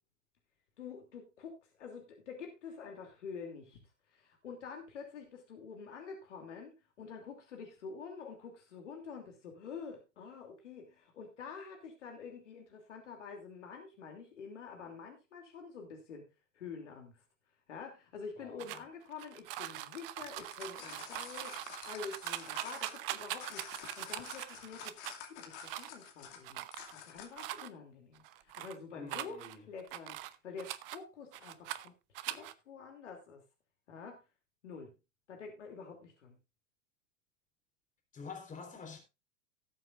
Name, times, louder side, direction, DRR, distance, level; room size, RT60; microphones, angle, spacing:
voice 1, 0.8-3.8 4.1-16.2 16.5-17.2 17.7-25.0 25.3-26.6 27.0-31.9 32.3-33.4 33.9-34.2 34.6-34.9 35.3-36.3, left 5 dB, 65° left, 3.0 m, -47 dB
sound 1, 18.6-25.2 25.6-26.1 26.4-27.0 27.3-27.7 28.2-28.8 29.1-31.0 31.3-31.9 32.1-32.5, right 14 dB, 45° right, 0.9 m, -42 dB
sound 2, 20.4-27.6, left 8 dB, 45° left, 2.5 m, -50 dB
voice 2, 29.0-29.7 38.1-39.0, left 5 dB, 20° left, 4.1 m, -47 dB
18.5 x 7.8 x 2.5 m
figure-of-eight pair, 95°, 39 cm